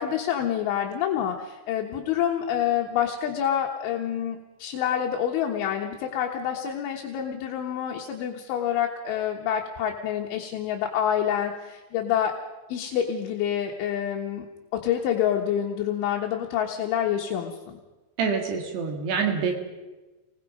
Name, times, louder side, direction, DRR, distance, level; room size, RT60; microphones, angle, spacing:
voice 1, 0.0-12.3 12.7-14.5 14.7-17.8, left 9 dB, 80° left, 1 dB, 3.6 m, -27 dB
voice 2, 18.2-19.5, right 6 dB, 65° right, 3 dB, 3.8 m, -26 dB
28.0 x 20.5 x 5.3 m, 1.2 s
omnidirectional pair, 5.6 m